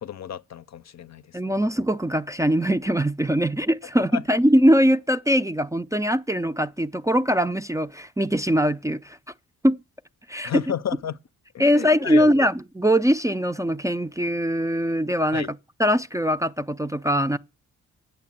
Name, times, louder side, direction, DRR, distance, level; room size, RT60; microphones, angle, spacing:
voice 1, 0.0-1.6 4.1-4.2 10.4-11.2 11.5-12.3 15.3-15.5, left 9 dB, 55° left, 0.6 m, -32 dB
voice 2, 1.3-9.2 9.6-9.8 10.3-10.6 11.6-17.4, equal, 10° right, 0.4 m, -22 dB
8.5 x 6.8 x 7.3 m
cardioid pair, 55°, 33 cm